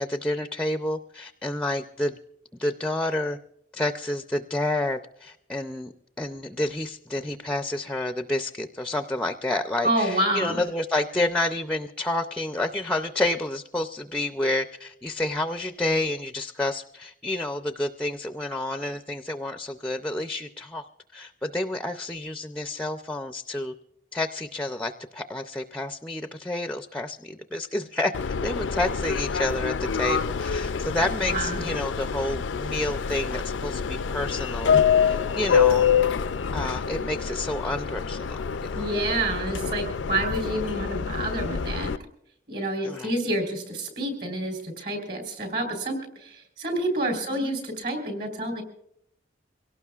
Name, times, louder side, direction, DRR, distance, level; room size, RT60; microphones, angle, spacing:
voice 1, 0.0-2.2 2.6-3.4 3.7-20.9 21.1-23.7 24.1-35.9 36.5-38.4 38.8-38.9 42.8-43.1 47.3-47.5, left 1 dB, 5° left, 8 dB, 0.4 m, -29 dB
voice 2, 9.8-10.6 31.2-31.6 38.8-41.9 42.5-48.6, right 1 dB, 55° right, 4 dB, 3.8 m, -28 dB
Subway metro underground, 28.1-42.0, left 6 dB, 80° left, 0.4 m, -26 dB
24.5 x 17.5 x 2.4 m, 0.76 s
head